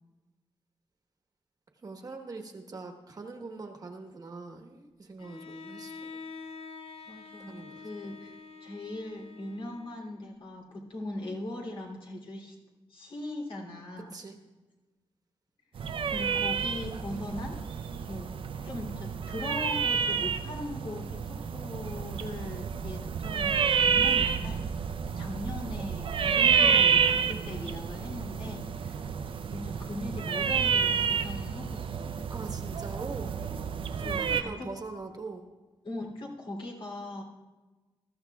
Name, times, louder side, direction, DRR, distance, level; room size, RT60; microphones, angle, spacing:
voice 1, 1.8-6.1 7.5-7.8 14.1-14.4 32.3-33.3 34.0-35.5, right 3 dB, 40° right, 3 dB, 1.2 m, -42 dB
Bowed string instrument, 5.2-10.2, left 4 dB, 85° left, 0.6 m, -46 dB
voice 2, 7.1-12.6 12.9-14.1 16.1-24.7 25.1-29.0 29.5-31.9 34.0-34.7 35.8-37.2, left 1 dB, 65° left, -1 dB, 3.0 m, -40 dB
sound 1, 15.8-34.4, right 6 dB, 65° right, 0.6 m, -29 dB
21.5 x 13.5 x 2.4 m, 1.2 s
wide cardioid pair, 120°, 10 cm